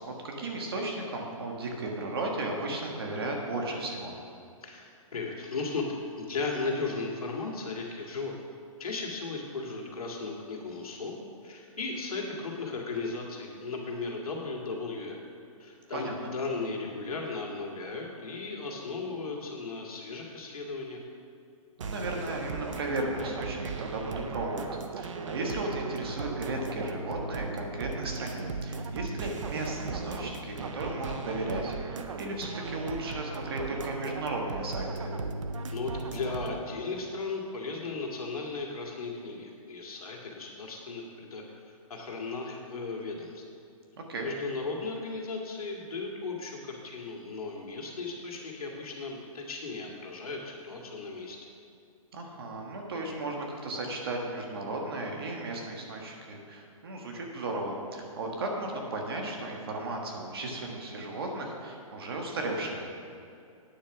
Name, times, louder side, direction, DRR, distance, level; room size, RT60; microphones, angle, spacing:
voice 1, 0.1-4.1 15.9-16.1 21.8-24.6 25.0-35.1 44.0-44.3 52.1-62.9, right 2 dB, 40° right, 0 dB, 1.5 m, -35 dB
voice 2, 4.6-5.8 6.2-8.3 8.8-11.1 11.4-15.2 15.6-21.0 35.7-43.4 44.2-51.4, left 3 dB, 80° left, 0 dB, 2.2 m, -36 dB
sound 1, 21.8-36.6, right 4 dB, 60° right, 0.8 m, -37 dB
9.5 x 7.5 x 6.0 m, 2.5 s
hypercardioid pair, 180°, 18 cm